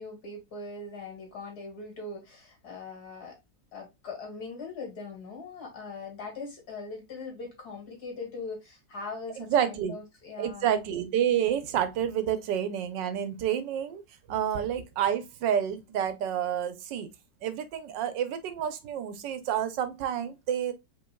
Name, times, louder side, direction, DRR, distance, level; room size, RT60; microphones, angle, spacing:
voice 1, 0.0-3.4 3.7-10.8, left 3 dB, 60° left, 2.6 m, -41 dB
voice 2, 9.4-9.9 10.4-14.0 14.3-17.1 17.4-20.7, right 9 dB, 90° right, 1.4 m, -29 dB
5.2 x 4.0 x 2.2 m
omnidirectional pair, 1.9 m